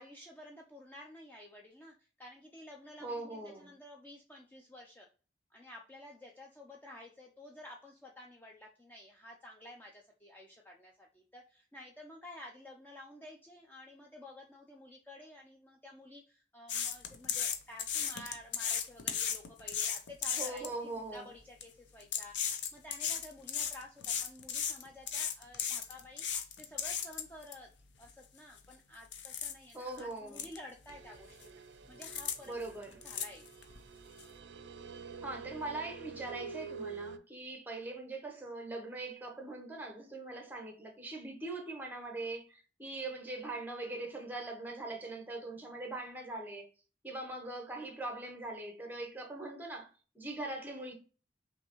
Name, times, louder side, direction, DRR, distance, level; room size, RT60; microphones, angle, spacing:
voice 1, 0.0-5.1 5.5-26.3 26.6-27.7 28.0-31.6 31.9-32.7 33.0-33.5, left 1 dB, 10° left, 0.4 m, -52 dB
voice 2, 3.0-3.7 20.4-21.3 29.7-30.4 32.5-33.0 35.2-46.7 47.0-49.9 50.1-50.9, right 2 dB, 10° right, 0.9 m, -41 dB
sound 1, 16.7-20.7 21.4-21.6 22.0-27.5 28.0-28.1 28.6-28.7 29.1-29.5 30.0-30.1 30.3-30.6 30.8-31.4 32.0-32.4 32.6-33.8 34.2-34.3, left 8 dB, 85° left, 0.6 m, -35 dB
sound 2, 30.9-37.2, right 5 dB, 85° right, 0.4 m, -47 dB
5.6 x 2.7 x 2.9 m
head